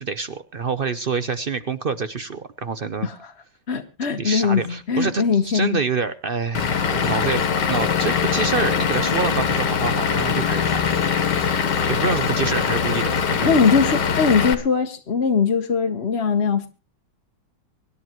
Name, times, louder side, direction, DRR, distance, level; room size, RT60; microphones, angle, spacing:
voice 1, 0.0-3.1 4.2-10.8 11.9-13.6, right 5 dB, 60° right, 12 dB, 0.5 m, -27 dB
voice 2, 3.7-5.8 13.4-16.7, left 5 dB, 40° left, 4 dB, 1.2 m, -21 dB
Vehicle / Engine, 6.5-14.5, left 6 dB, 70° left, 1.8 m, -22 dB
25.0 x 11.0 x 3.0 m, 0.35 s
omnidirectional pair, 2.0 m